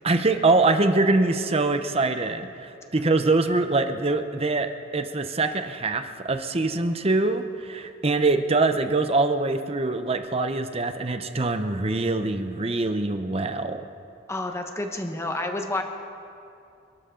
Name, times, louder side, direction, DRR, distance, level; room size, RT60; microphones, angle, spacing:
voice 1, 0.0-13.9, right 3 dB, 30° right, 8 dB, 0.8 m, -24 dB
voice 2, 14.3-15.8, left 2 dB, 15° left, 4 dB, 1.2 m, -29 dB
27.0 x 12.5 x 3.9 m, 2.5 s
head